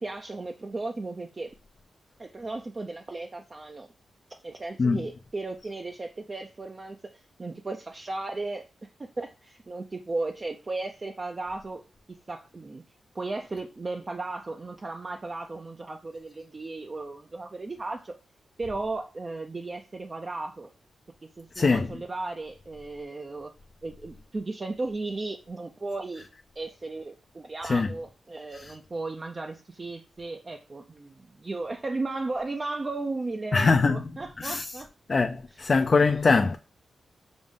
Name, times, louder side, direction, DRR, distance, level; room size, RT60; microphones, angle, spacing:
voice 1, 0.0-1.5 2.2-3.9 4.4-8.7 9.2-11.8 12.1-12.8 13.1-18.1 18.6-20.7 21.4-23.5 23.8-26.3 26.6-34.9, right 2 dB, 35° right, 0.4 m, -35 dB
voice 2, 21.5-22.0 27.6-27.9 28.5-28.7 33.5-34.8 35.1-36.6, left 4 dB, 45° left, 0.3 m, -23 dB
5.1 x 2.0 x 3.6 m
cardioid pair, 75°, 0 cm